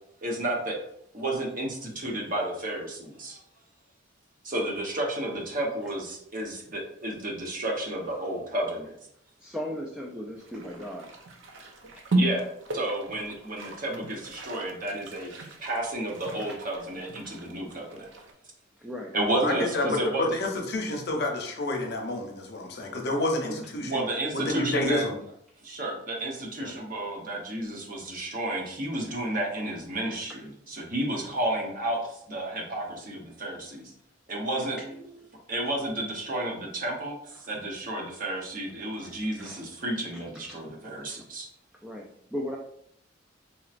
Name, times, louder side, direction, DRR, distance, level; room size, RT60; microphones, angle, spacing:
voice 1, 0.2-0.8 1.1-3.4 4.4-8.9 12.1-12.5 12.7-18.1 19.1-20.2 23.4-25.1 25.6-33.9 34.3-34.8 35.5-41.5, right 1 dB, 45° right, -1 dB, 0.9 m, -32 dB
voice 2, 9.4-11.1 11.9-12.0 13.2-13.3 16.4-16.6 18.8-19.7 34.9-35.3 38.9-39.7 40.3-40.6 41.1-41.2 41.8-42.6, equal, 5° right, -1 dB, 0.3 m, -37 dB
sound 1, 10.4-18.3, right 1 dB, 65° right, 0.5 m, -35 dB
voice 3, 19.4-24.0 24.5-25.2 26.6-26.7, left 2 dB, 55° left, 2 dB, 0.7 m, -29 dB
4.1 x 2.9 x 2.4 m, 0.70 s
head